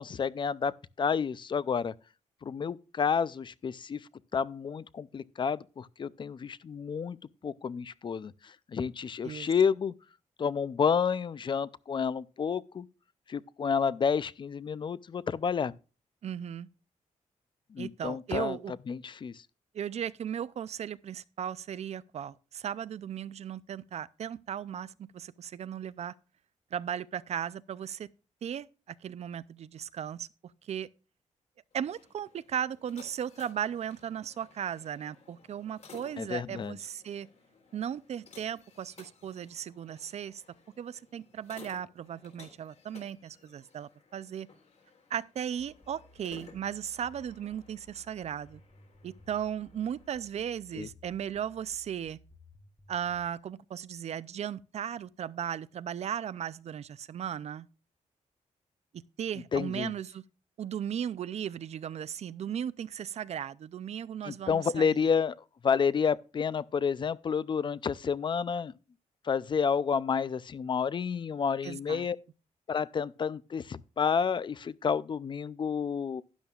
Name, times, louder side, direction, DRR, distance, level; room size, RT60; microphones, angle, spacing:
voice 1, 0.0-1.9 2.4-7.2 7.4-9.9 10.4-12.9 13.3-15.7 17.7-19.4 36.2-36.8 50.7-50.9 59.5-59.9 64.2-65.4 65.6-68.7 69.2-72.2 72.7-76.2, left 6 dB, 40° left, 0.4 m, -30 dB
voice 2, 16.2-16.7 17.8-18.7 19.7-26.1 26.7-28.1 28.4-30.3 30.6-30.9 31.7-37.3 37.7-40.4 40.8-44.5 45.1-48.6 49.0-52.2 52.9-57.7 58.9-60.2 60.6-65.0 71.6-72.1, right 9 dB, 55° right, 0.5 m, -36 dB
sound 1, 31.7-50.2, left 5 dB, 60° left, 3.7 m, -57 dB
sound 2, 45.6-53.3, left 1 dB, 5° left, 0.8 m, -58 dB
12.5 x 10.5 x 2.4 m
wide cardioid pair, 140°, 13 cm